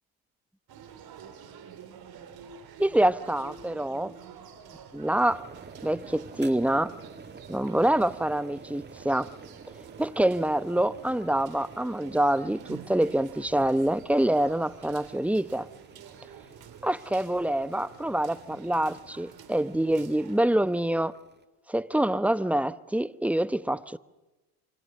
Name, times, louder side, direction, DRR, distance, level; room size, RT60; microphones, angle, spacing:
sound 1, 0.7-20.4, right 8 dB, 55° right, 4.0 m, -49 dB
voice 1, 2.8-4.1 4.9-5.4 5.8-6.9 7.5-9.3 10.0-15.7 16.8-21.1 21.7-24.0, right 1 dB, 5° right, 0.9 m, -26 dB
sound 2, 5.1-21.4, right 5 dB, 25° right, 1.6 m, -50 dB
27.5 x 25.5 x 6.6 m
hypercardioid pair, 70°, 43 cm